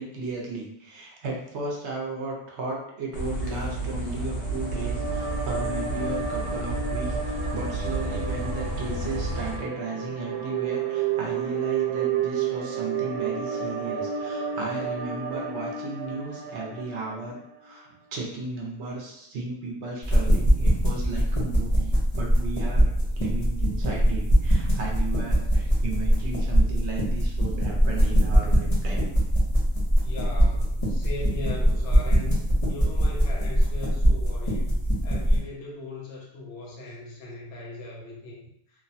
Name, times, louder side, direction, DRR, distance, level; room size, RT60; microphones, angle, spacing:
voice 1, 0.0-29.0, right 3 dB, 60° right, -2 dB, 0.8 m, -35 dB
tri rail intersection, 3.1-9.6, right 2 dB, 85° left, 1.2 m, -31 dB
sound 1, 4.3-17.7, right 7 dB, 80° right, 1.0 m, -31 dB
sound 2, 20.0-35.4, equal, 35° left, 0.5 m, -22 dB
voice 2, 30.0-34.7 35.0-38.5, left 3 dB, 55° left, -3 dB, 1.0 m, -39 dB
3.0 x 2.1 x 2.6 m, 0.74 s
omnidirectional pair, 1.6 m